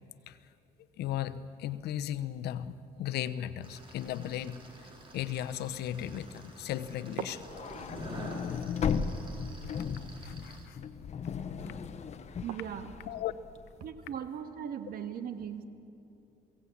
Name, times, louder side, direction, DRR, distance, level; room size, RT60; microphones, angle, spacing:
voice 1, 1.0-4.6 5.1-7.4 9.6-9.7 10.2-10.8 13.1-13.3, left 11 dB, 75° left, 11 dB, 0.9 m, -36 dB
sound 1, 3.6-10.7, right 2 dB, 30° right, 4.2 m, -49 dB
sound 2, 7.2-13.0, right 8 dB, 85° right, 1.3 m, -48 dB
sound 3, 7.4-13.7, left 6 dB, 40° left, 1.1 m, -36 dB
voice 2, 12.4-12.9 13.8-15.6, right 8 dB, 60° right, 8 dB, 1.7 m, -38 dB
22.5 x 17.0 x 8.6 m, 2.9 s
cardioid pair, 110°, 17 cm